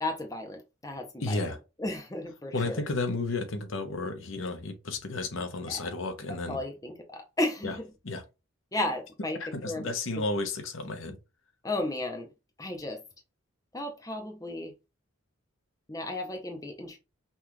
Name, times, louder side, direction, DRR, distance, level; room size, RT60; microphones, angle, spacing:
voice 1, 0.0-1.5 1.8-2.8 5.7-5.8 6.5-7.8 8.7-9.4 9.6-9.8 11.6-12.3 12.6-13.0 13.7-14.7 15.9-17.0, left 1 dB, 15° left, 0.6 m, -34 dB
voice 2, 1.2-1.6 2.5-6.6 7.6-7.8 8.0-8.2 9.4-11.2, left 2 dB, 75° left, 0.9 m, -32 dB
5.5 x 2.4 x 3.0 m
head